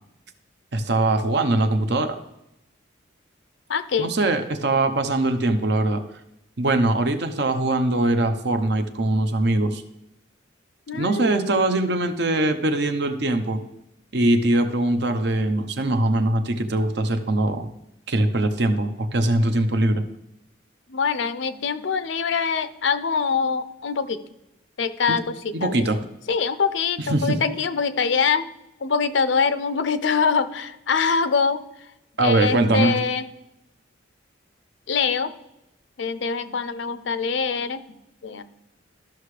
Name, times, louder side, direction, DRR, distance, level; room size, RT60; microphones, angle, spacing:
voice 1, 0.7-2.2 4.0-6.0 6.6-9.8 10.9-13.6 14.1-17.7 18.1-20.0 25.1-25.2 25.5-26.0 27.1-27.4 32.2-33.0, right 2 dB, 60° right, 7 dB, 0.8 m, -22 dB
voice 2, 3.7-4.1 10.9-11.7 20.9-24.2 24.8-25.7 26.3-28.4 28.8-31.6 32.2-33.3 34.9-35.3 36.0-37.8 38.2-38.4, left 5 dB, 65° left, 12 dB, 0.5 m, -24 dB
13.5 x 5.9 x 3.2 m, 0.85 s
head